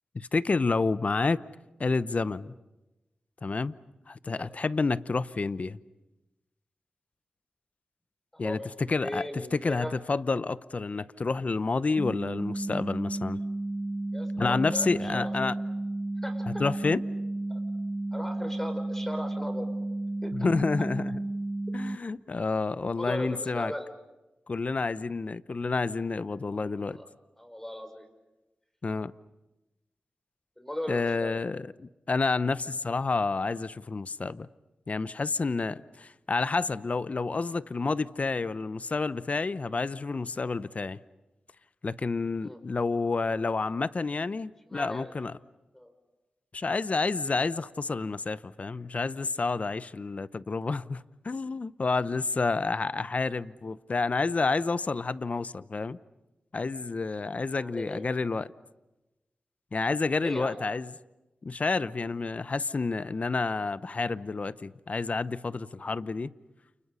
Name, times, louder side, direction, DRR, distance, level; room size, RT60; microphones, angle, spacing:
voice 1, 0.1-1.4 1.8-2.5 3.4-3.8 4.1-5.8 8.4-13.4 14.4-15.6 16.5-17.0 20.3-21.2 21.7-23.7 24.5-27.0 28.8-29.1 30.9-34.5 34.9-41.0 41.8-45.4 46.5-56.0 56.5-58.5 59.7-60.9 61.4-66.3, left 4 dB, 50° left, 0.8 m, -29 dB
voice 2, 8.3-8.7 9.0-9.9 14.1-15.6 16.2-16.5 17.5-17.6 18.1-19.7 20.2-20.3 23.0-23.9 26.5-27.1 27.4-28.1 30.6-31.4 42.4-42.6 44.7-45.1 45.7-45.9 57.6-58.0 60.2-60.6, left 1 dB, 10° left, 5.7 m, -38 dB
sound 1, 12.0-22.0, right 2 dB, 25° right, 0.9 m, -32 dB
30.0 x 29.0 x 5.6 m
cardioid pair, 45°, 3 cm